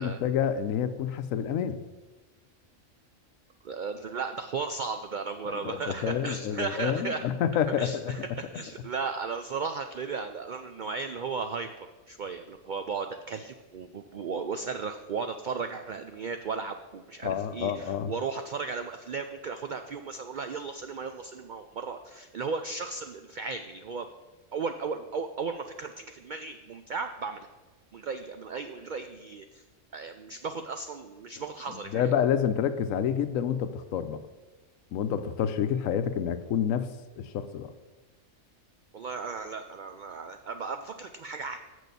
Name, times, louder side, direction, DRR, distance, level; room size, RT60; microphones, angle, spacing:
voice 1, 0.0-1.8 5.5-8.3 17.2-18.1 31.7-34.2 34.9-36.9 37.2-37.7, left 8 dB, 85° left, 11 dB, 1.0 m, -28 dB
voice 2, 3.6-7.2 7.8-11.7 12.1-24.1 24.5-27.5 27.9-29.6 29.9-32.0 38.9-41.6, right 5 dB, 80° right, 7 dB, 0.4 m, -35 dB
6.9 x 6.4 x 6.7 m, 1.2 s
omnidirectional pair, 1.4 m